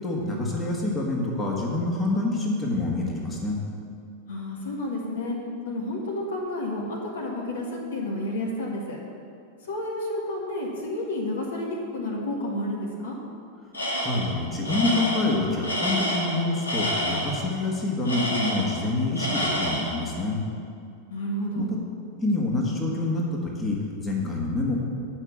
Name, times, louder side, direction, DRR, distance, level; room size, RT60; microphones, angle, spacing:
voice 1, 0.0-3.6 14.0-20.4 21.6-21.7 22.2-24.8, left 2 dB, 15° left, -2 dB, 1.8 m, -27 dB
voice 2, 4.3-5.4 5.7-9.0 9.6-13.2 21.1-21.7, left 1 dB, 65° left, -2 dB, 1.8 m, -30 dB
Tools, 13.7-14.3 14.6-17.4 18.0-18.9 19.2-20.0, equal, 80° left, 1.8 m, -28 dB
9.0 x 5.9 x 7.4 m, 2.4 s
figure-of-eight pair, 90°, 0 cm